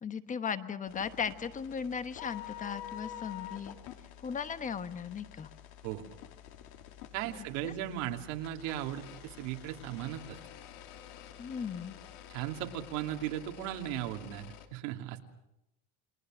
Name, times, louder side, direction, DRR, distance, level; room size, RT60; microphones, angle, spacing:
voice 1, 0.0-3.8 4.2-5.5 7.3-7.7 11.4-12.0, left 6 dB, 20° left, 11 dB, 1.1 m, -37 dB
sound 1, 0.9-14.7, left 11 dB, 75° left, 3.1 m, -49 dB
voice 2, 7.1-10.4 12.3-15.2, right 12 dB, 85° right, 3 dB, 2.9 m, -37 dB
30.0 x 22.0 x 6.3 m, 0.86 s
cardioid pair, 155°, 37 cm